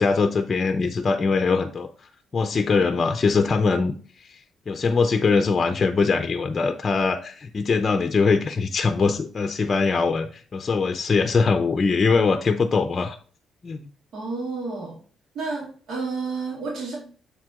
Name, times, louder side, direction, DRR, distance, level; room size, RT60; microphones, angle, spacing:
voice 1, 0.0-1.9 2.3-3.9 4.7-13.2 13.6-13.8, left 4 dB, 35° left, 7 dB, 0.6 m, -22 dB
voice 2, 14.1-15.0 15.3-17.0, right 4 dB, 70° right, -3 dB, 2.1 m, -30 dB
6.7 x 4.7 x 3.7 m, 0.41 s
cardioid pair, 90°, 0 cm